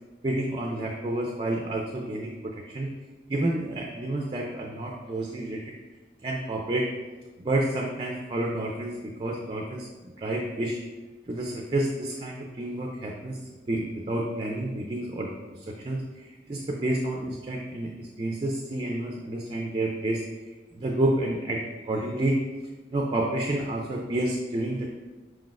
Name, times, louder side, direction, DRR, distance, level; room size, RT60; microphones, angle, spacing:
voice 1, 0.2-2.9 3.3-5.7 6.2-6.9 7.4-9.9 10.2-10.8 11.3-13.4 13.7-15.4 15.8-20.2 20.7-22.4 22.9-24.9, right 1 dB, 30° right, 0 dB, 0.3 m, -29 dB
4.6 x 3.9 x 2.4 m, 1.3 s
head